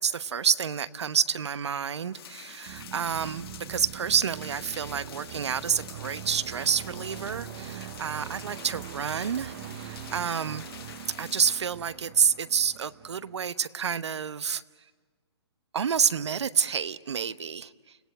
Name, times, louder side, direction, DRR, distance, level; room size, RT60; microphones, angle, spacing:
voice 1, 0.0-10.7 11.2-14.6 15.7-18.0, right 7 dB, 80° right, 14 dB, 1.0 m, -29 dB
sound 1, 2.1-11.6, left 9 dB, 60° left, 2.4 m, -46 dB
sound 2, 2.7-13.4, right 11 dB, 35° right, 0.8 m, -42 dB
30.0 x 17.5 x 9.3 m, 1.4 s
hypercardioid pair, 155°, 14 cm